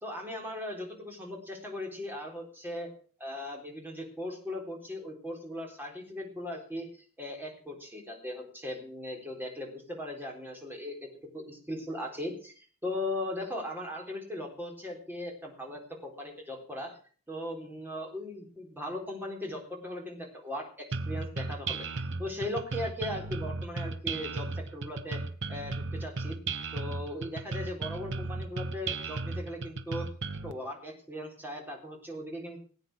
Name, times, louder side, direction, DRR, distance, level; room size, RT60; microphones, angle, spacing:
voice 1, 0.0-2.9 3.2-11.1 11.3-17.0 17.3-25.2 25.5-26.4 26.7-30.1 30.4-32.6, left 1 dB, 10° right, 1 dB, 3.9 m, -38 dB
sound 1, 20.9-30.5, right 3 dB, 55° right, 1.1 m, -35 dB
18.0 x 8.9 x 6.2 m, 0.43 s
head